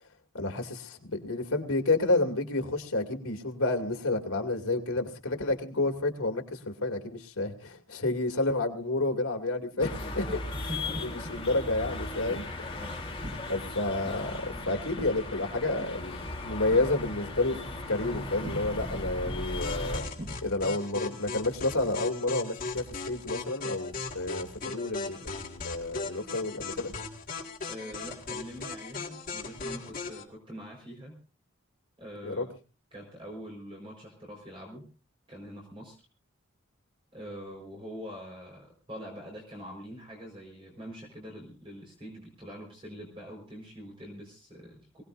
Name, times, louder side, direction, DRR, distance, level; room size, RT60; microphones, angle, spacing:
voice 1, 0.3-10.3 11.0-12.7 13.5-17.6 17.9-20.1 20.4-26.9 32.2-32.5, left 2 dB, 80° left, 2.5 m, -30 dB
sound 1, 9.8-20.0, left 2 dB, 25° left, 3.3 m, -37 dB
voice 2, 10.0-11.4 12.7-13.1 27.7-31.2 32.0-32.4 32.9-34.8 35.3-36.0 37.1-45.0, equal, 25° right, 4.6 m, -44 dB
sound 2, 11.6-20.6, equal, 45° right, 6.0 m, -45 dB
sound 3, 19.6-30.2, left 4 dB, 40° left, 2.2 m, -38 dB
24.0 x 18.0 x 2.6 m
head